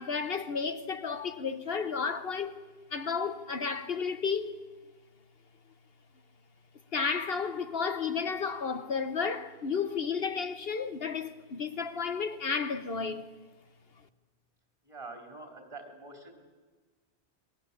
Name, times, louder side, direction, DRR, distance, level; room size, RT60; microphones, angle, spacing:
voice 1, 0.0-2.6 2.9-4.6 6.9-13.3, left 5 dB, 65° left, 1.2 m, -32 dB
voice 2, 14.8-16.4, right 3 dB, 30° right, 4.1 m, -46 dB
29.0 x 22.0 x 8.4 m
omnidirectional pair, 1.1 m